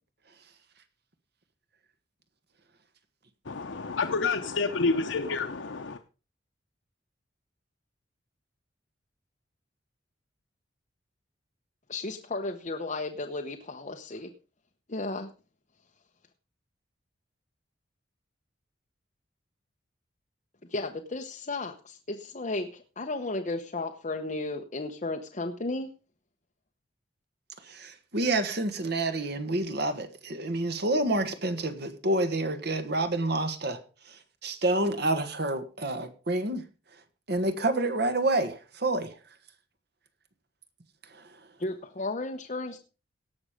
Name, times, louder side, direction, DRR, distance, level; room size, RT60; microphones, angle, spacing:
voice 1, 3.4-6.0, left 4 dB, 80° left, 0.9 m, -29 dB
voice 2, 11.9-14.3 14.9-15.3 20.7-25.9 41.6-42.8, left 2 dB, 40° left, 1.0 m, -34 dB
voice 3, 27.7-33.8 34.4-36.6 37.3-39.1, right 2 dB, 60° right, 1.6 m, -28 dB
17.5 x 6.5 x 5.1 m
head